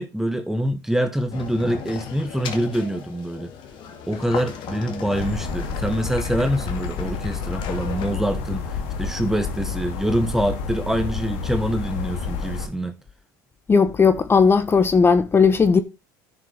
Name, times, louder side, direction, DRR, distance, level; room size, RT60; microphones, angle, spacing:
voice 1, 0.0-3.5 4.1-13.0, right 1 dB, 5° right, 1.1 m, -25 dB
sound 1, 1.3-8.2, left 6 dB, 60° left, 2.1 m, -36 dB
sound 2, 5.1-12.7, left 5 dB, 75° left, 2.2 m, -30 dB
voice 2, 13.7-15.8, left 5 dB, 25° left, 1.1 m, -16 dB
10.5 x 6.5 x 3.5 m
supercardioid pair, 90°, 9 cm